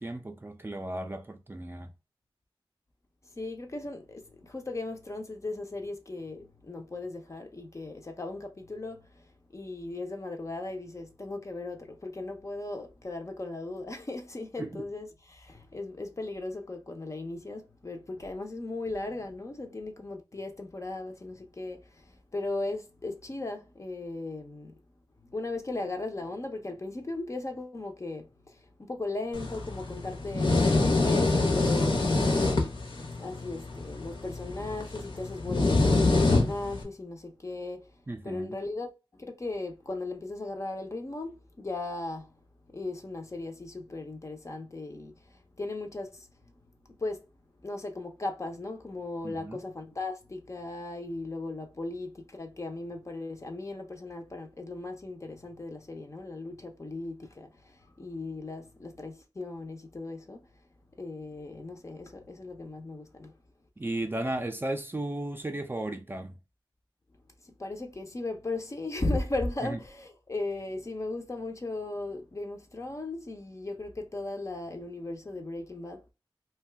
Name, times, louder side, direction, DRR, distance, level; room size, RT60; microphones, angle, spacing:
voice 1, 0.0-1.9 14.6-14.9 38.1-38.6 49.2-49.6 63.8-66.3 69.6-69.8, right 1 dB, 25° right, 0.4 m, -35 dB
voice 2, 3.4-9.3 9.5-24.7 25.2-32.5 33.2-37.9 38.2-42.3 42.7-46.5 47.0-47.3 47.6-60.4 61.0-63.3 67.4-76.1, left 2 dB, 35° left, 0.6 m, -37 dB
sound 1, 29.3-36.8, left 2 dB, 60° left, 0.8 m, -26 dB
2.6 x 2.2 x 3.2 m
wide cardioid pair, 105°, 9 cm